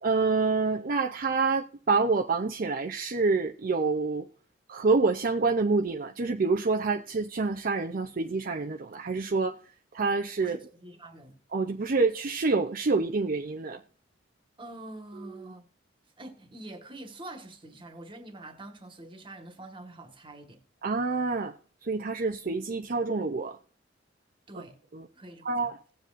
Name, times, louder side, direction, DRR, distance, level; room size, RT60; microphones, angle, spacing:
voice 1, 0.0-4.3 4.7-9.6 9.9-10.6 11.5-13.8 20.8-21.6 21.8-23.6 24.5-24.6 24.9-25.0 25.4-25.8, right 4 dB, 50° right, 0.6 m, -27 dB
voice 2, 10.4-11.4 14.6-15.7 16.2-20.6 24.5-24.8 25.1-25.7, right 1 dB, 30° right, 1.6 m, -45 dB
17.5 x 7.5 x 2.5 m
head